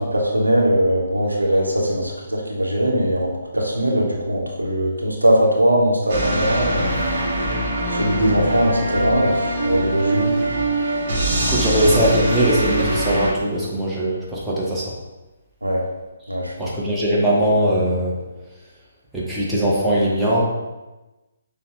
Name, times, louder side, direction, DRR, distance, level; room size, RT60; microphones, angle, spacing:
voice 1, 0.0-6.9 7.9-10.3 15.6-15.8 16.3-16.5, equal, 90° right, -1 dB, 0.9 m, -20 dB
sound 1, 6.1-13.3, right 1 dB, 45° right, 1.0 m, -22 dB
voice 2, 11.5-14.9 16.6-18.2 19.1-20.4, equal, 5° right, -8 dB, 0.9 m, -20 dB
6.7 x 2.3 x 2.9 m, 1.1 s
figure-of-eight pair, 140°, 0 cm